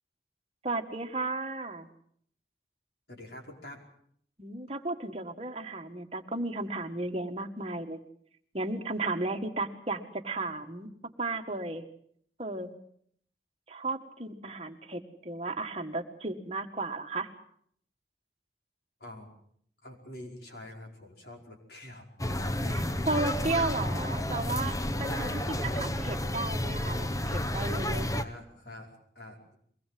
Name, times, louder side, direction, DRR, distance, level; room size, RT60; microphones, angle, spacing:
voice 1, 0.6-1.9 4.4-8.0 8.5-10.9 11.2-11.8 12.4-12.8 13.7-17.3 23.1-28.2, right 2 dB, 35° right, 5 dB, 1.7 m, -34 dB
voice 2, 3.1-3.8 19.0-19.3 19.8-22.1 22.6-22.9 25.0-25.6 28.1-29.6, left 1 dB, 60° left, 1 dB, 5.2 m, -46 dB
sound 1, 22.2-28.2, left 1 dB, 20° left, 0.9 m, -31 dB
23.0 x 20.0 x 7.7 m, 0.65 s
head